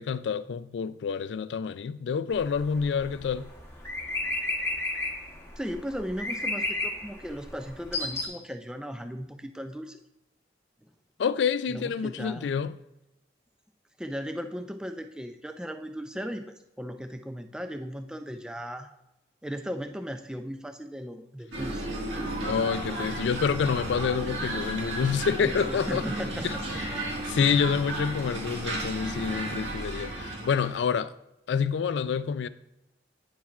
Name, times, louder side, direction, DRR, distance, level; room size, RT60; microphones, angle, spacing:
voice 1, 0.0-3.5 11.2-12.8 22.4-26.0 26.7-26.8 27.3-31.1 31.5-32.5, left 6 dB, 75° left, 0.3 m, -27 dB
sound 1, 2.3-8.3, left 2 dB, 15° left, 1.0 m, -33 dB
voice 2, 5.6-10.0 11.7-12.5 14.0-18.9 19.4-21.8 25.4-26.6, equal, 5° right, 0.3 m, -37 dB
sound 2, 21.5-30.8, right 1 dB, 80° right, 1.7 m, -34 dB
9.6 x 7.2 x 2.4 m
head